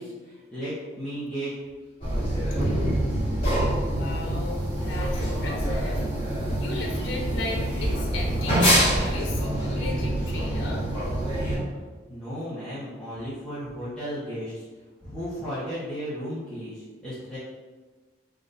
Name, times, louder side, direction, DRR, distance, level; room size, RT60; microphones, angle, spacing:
voice 1, 0.0-1.5 2.5-2.9 12.1-14.5 15.0-17.4, equal, 5° left, -13 dB, 0.7 m, -34 dB
sound 1, 2.0-11.6, equal, 25° left, 1.3 m, -25 dB
voice 2, 3.9-6.0 6.6-10.8, left 2 dB, 80° left, 0 dB, 0.6 m, -36 dB
3.7 x 2.2 x 3.9 m, 1.3 s
head